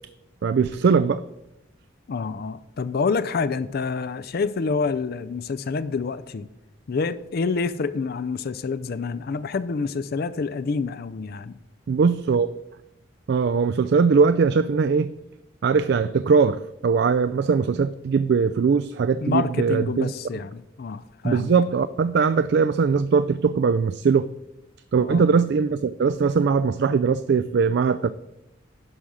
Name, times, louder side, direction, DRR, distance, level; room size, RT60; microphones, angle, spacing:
voice 1, 0.4-1.2 11.9-12.5 13.3-15.1 15.6-20.1 21.2-24.3 24.9-28.1, right 5 dB, 55° right, 0.3 m, -20 dB
voice 2, 2.1-6.5 6.9-11.5 19.2-21.5 25.0-25.2, left 4 dB, 50° left, 0.4 m, -27 dB
11.0 x 5.0 x 6.2 m
head